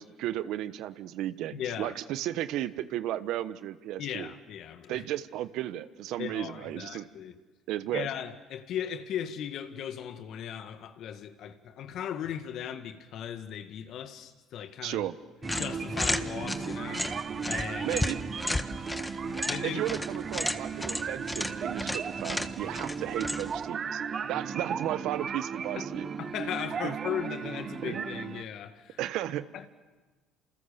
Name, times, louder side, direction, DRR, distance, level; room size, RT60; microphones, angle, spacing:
voice 1, 0.0-4.3 4.9-7.1 7.7-8.1 14.8-15.1 17.8-18.2 19.6-24.0 24.3-26.1 26.8-26.9 27.8-28.0 29.0-29.5, right 13 dB, 70° right, 1.2 m, -34 dB
voice 2, 1.5-2.0 4.0-5.1 6.2-7.4 7.9-15.1 15.5-18.0 18.5-19.8 25.8-25.9 26.2-29.0 29.5-29.7, left 9 dB, 60° left, 2.0 m, -38 dB
sound 1, 15.4-23.7, left 1 dB, 10° left, 1.5 m, -34 dB
sound 2, 15.4-28.4, right 6 dB, 40° right, 1.2 m, -36 dB
28.5 x 28.0 x 7.0 m
supercardioid pair, 75°, 0 cm